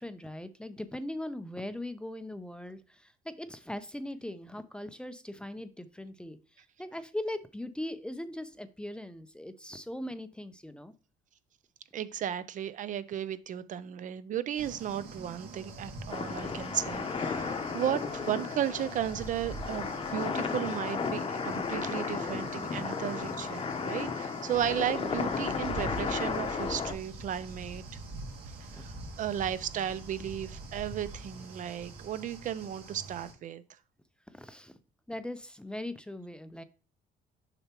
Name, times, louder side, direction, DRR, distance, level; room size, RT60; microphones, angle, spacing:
voice 1, 0.0-6.4 6.8-10.9 28.7-28.8 34.3-34.7 35.1-36.6, left 1 dB, 5° left, 0.5 m, -40 dB
voice 2, 11.9-27.8 28.6-33.6, right 10 dB, 50° right, 0.5 m, -35 dB
sound 1, 14.5-33.3, right 2 dB, 75° right, 1.9 m, -45 dB
sound 2, 16.1-26.9, left 5 dB, 35° left, 0.8 m, -34 dB
6.8 x 5.5 x 2.9 m
cardioid pair, 110°, 17 cm